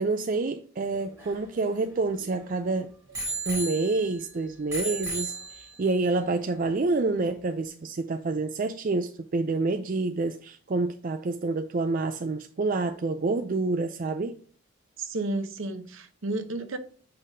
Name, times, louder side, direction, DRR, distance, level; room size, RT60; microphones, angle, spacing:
voice 1, 0.0-2.9 3.5-14.4, right 3 dB, 40° right, 0.4 m, -28 dB
Bicycle bell, 0.8-2.5 3.1-4.3 4.7-6.0 6.7-6.8, right 2 dB, 15° right, 2.1 m, -35 dB
voice 2, 15.0-16.8, right 2 dB, 70° right, 0.9 m, -32 dB
8.2 x 5.5 x 2.7 m
head